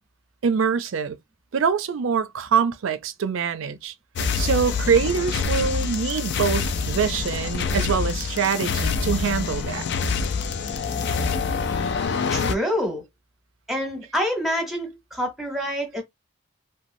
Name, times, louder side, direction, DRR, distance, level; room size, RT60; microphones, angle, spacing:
voice 1, 0.4-1.2 1.5-3.9 4.4-9.9, right 6 dB, 85° right, 0.4 m, -24 dB
sound 1, 4.2-12.5, left 5 dB, 60° left, 0.4 m, -26 dB
voice 2, 12.3-13.0 13.7-16.0, equal, ahead, 0.9 m, -26 dB
3.0 x 2.2 x 2.6 m
head